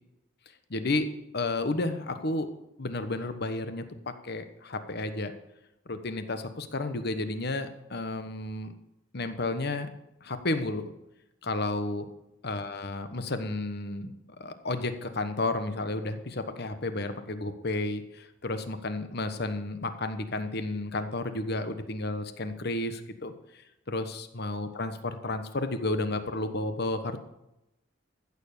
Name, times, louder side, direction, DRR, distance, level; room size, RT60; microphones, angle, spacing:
voice 1, 0.7-2.5 2.8-3.8 4.2-5.3 5.9-8.7 9.1-9.9 10.2-10.9 11.4-12.1 12.4-23.6 23.9-27.2, left 2 dB, 55° left, 9 dB, 1.1 m, -32 dB
15.0 x 7.0 x 6.7 m, 0.89 s
head